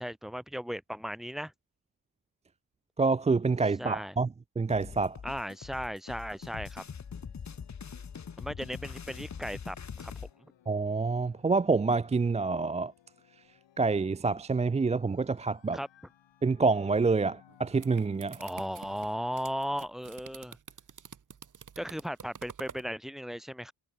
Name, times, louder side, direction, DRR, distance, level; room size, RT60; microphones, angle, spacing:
voice 1, 0.0-1.5 3.8-4.2 5.2-6.8 8.4-10.1 15.7-15.9 18.4-20.6 21.8-23.7, equal, ahead, 2.2 m, -36 dB
voice 2, 3.0-4.3 4.6-5.2 10.7-12.9 13.8-15.8 16.4-18.4, right 4 dB, 15° right, 0.4 m, -27 dB
sound 1, 4.7-10.3, left 6 dB, 40° left, 3.9 m, -43 dB
sound 2, 6.2-19.8, left 11 dB, 75° left, 5.4 m, -63 dB
sound 3, 17.5-22.9, right 7 dB, 40° right, 4.0 m, -48 dB
wide cardioid pair, 160°, 45 cm